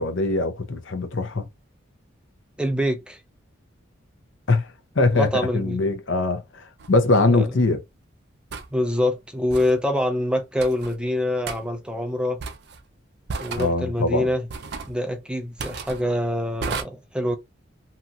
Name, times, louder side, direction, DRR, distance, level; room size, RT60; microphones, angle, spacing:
voice 1, 0.0-1.5 4.5-4.7 5.0-7.8 13.6-14.3, left 2 dB, 65° left, 0.7 m, -22 dB
voice 2, 2.6-3.2 5.1-5.8 7.3-7.5 8.7-12.4 13.4-14.5 14.8-17.4, left 1 dB, 5° right, 0.4 m, -25 dB
sound 1, 6.8-6.9 8.5-8.7 9.5-9.8 10.6-10.9 11.5-11.6 12.4-12.8 13.3-13.7 14.5-14.9 15.6-16.0 16.6-16.8, right 4 dB, 55° right, 0.5 m, -33 dB
2.8 x 2.7 x 2.4 m
head